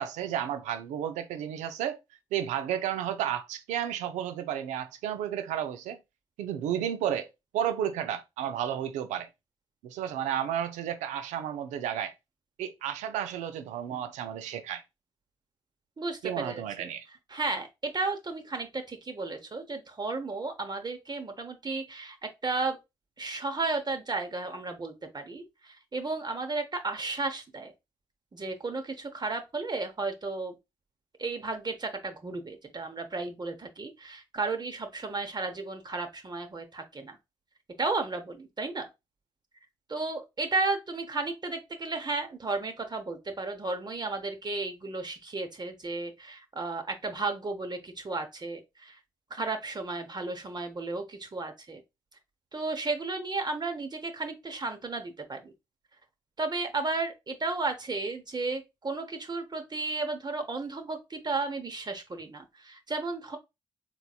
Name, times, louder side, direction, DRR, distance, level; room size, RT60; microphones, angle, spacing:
voice 1, 0.0-2.0 2.3-6.0 6.4-7.3 7.5-9.3 9.8-12.1 12.6-14.8 16.2-17.0, right 10 dB, 80° right, 0.5 m, -32 dB
voice 2, 16.0-16.9 17.3-22.2 22.4-22.8 23.2-27.7 28.3-30.5 31.2-37.2 37.8-38.9 39.9-49.0 49.3-51.8 52.5-55.5 56.4-63.4, right 3 dB, 35° right, 0.8 m, -33 dB
3.8 x 2.9 x 2.3 m
hypercardioid pair, 40°, 12 cm